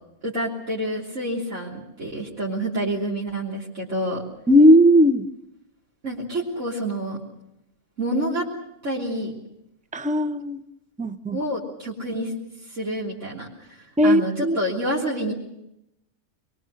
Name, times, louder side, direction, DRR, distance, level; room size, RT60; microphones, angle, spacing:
voice 1, 0.2-4.2 6.0-7.2 8.0-8.5 8.8-9.3 11.3-12.3 12.6-15.3, right 1 dB, 75° right, -5 dB, 3.7 m, -28 dB
voice 2, 4.5-5.3 9.9-10.6 11.0-11.4 14.0-14.6, equal, 10° right, 10 dB, 0.7 m, -17 dB
24.0 x 22.0 x 6.5 m, 0.82 s
omnidirectional pair, 1.3 m